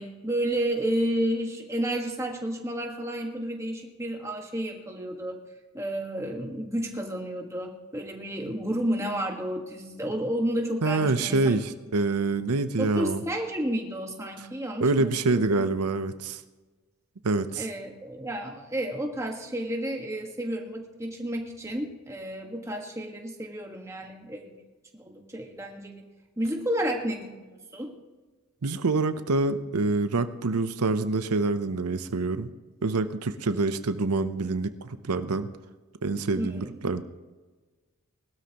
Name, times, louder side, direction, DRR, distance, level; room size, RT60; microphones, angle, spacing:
voice 1, 0.0-5.4 5.7-11.6 12.8-15.4 17.6-24.6 25.0-26.1 26.4-27.9 36.4-36.9, right 1 dB, 15° right, 1 dB, 1.5 m, -31 dB
voice 2, 10.8-13.2 14.8-16.4 17.2-17.7 28.6-32.5 32.8-35.5 36.0-37.0, right 3 dB, 90° right, 10 dB, 0.7 m, -26 dB
19.5 x 13.0 x 3.0 m, 1.3 s
head